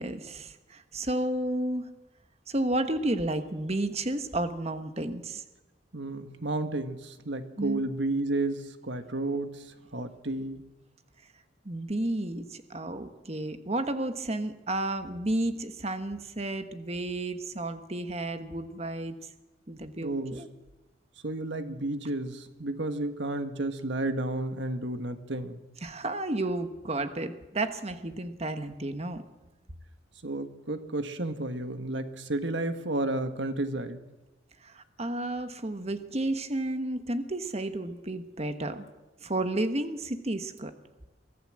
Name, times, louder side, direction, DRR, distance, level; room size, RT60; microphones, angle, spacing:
voice 1, 0.0-1.9 2.5-5.4 7.6-7.8 11.6-19.2 19.7-20.5 25.8-29.2 34.6-38.8 39.2-40.7, right 1 dB, 35° right, 9 dB, 1.3 m, -32 dB
voice 2, 5.9-10.7 20.0-20.4 21.2-25.6 30.2-34.0, right 2 dB, 70° right, 8 dB, 1.6 m, -32 dB
23.5 x 14.5 x 7.7 m, 1.1 s
head